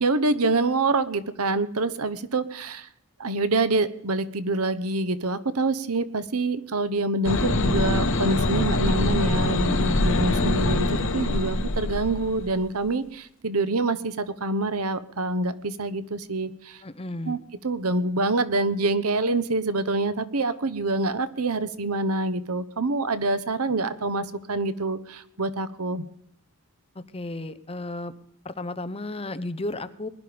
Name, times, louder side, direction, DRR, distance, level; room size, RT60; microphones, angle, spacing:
voice 1, 0.0-2.9 3.2-10.9 11.1-16.8 17.3-17.4 17.6-26.0, right 2 dB, 75° right, 14 dB, 1.2 m, -26 dB
sound 1, 7.2-12.6, left 2 dB, 60° left, 1.7 m, -24 dB
voice 2, 16.8-17.4 26.9-28.1 28.4-30.1, left 2 dB, 25° left, 12 dB, 1.0 m, -33 dB
21.0 x 11.5 x 5.2 m, 0.75 s
head